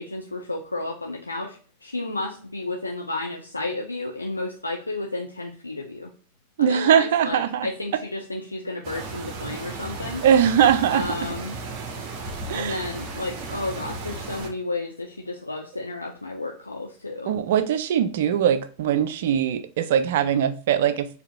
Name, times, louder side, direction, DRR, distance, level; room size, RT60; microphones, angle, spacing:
voice 1, 0.0-6.1 6.6-10.2 10.9-11.6 12.5-17.4, left 2 dB, 80° left, 0.5 m, -32 dB
voice 2, 6.6-7.7 10.2-11.0 12.5-12.8 17.3-21.1, right 9 dB, 55° right, 0.4 m, -21 dB
sound 1, 8.8-14.5, right 3 dB, 35° right, 0.9 m, -35 dB
6.5 x 2.7 x 2.2 m
figure-of-eight pair, 90°, 0 cm